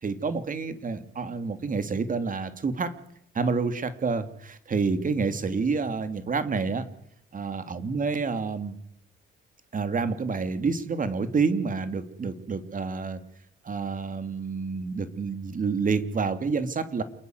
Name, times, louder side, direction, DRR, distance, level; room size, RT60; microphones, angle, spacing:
voice 1, 0.0-2.9 3.3-6.8 7.3-8.8 9.7-13.2 13.6-17.0, right 4 dB, 40° right, 10 dB, 3.1 m, -28 dB
28.0 x 20.5 x 8.2 m, 0.69 s
cardioid pair, 90°, 20 cm